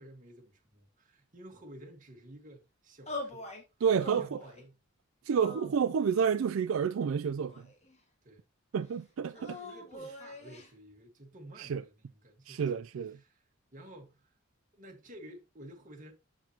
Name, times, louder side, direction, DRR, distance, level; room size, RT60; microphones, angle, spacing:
voice 1, 0.0-3.5 4.0-4.8 8.2-8.4 9.3-11.9 12.2-12.8 13.1-13.4 13.7-14.3 14.7-16.1, right 1 dB, 40° right, 1.7 m, -52 dB
sound 1, 3.1-3.6 4.0-4.7 5.3-6.2 7.0-8.0 9.3-10.7, left 2 dB, 35° left, 1.8 m, -44 dB
voice 2, 3.8-4.4 5.2-7.7 8.7-9.6 11.6-11.8 12.5-13.2, right 6 dB, 75° right, 0.4 m, -29 dB
7.2 x 7.1 x 2.9 m
head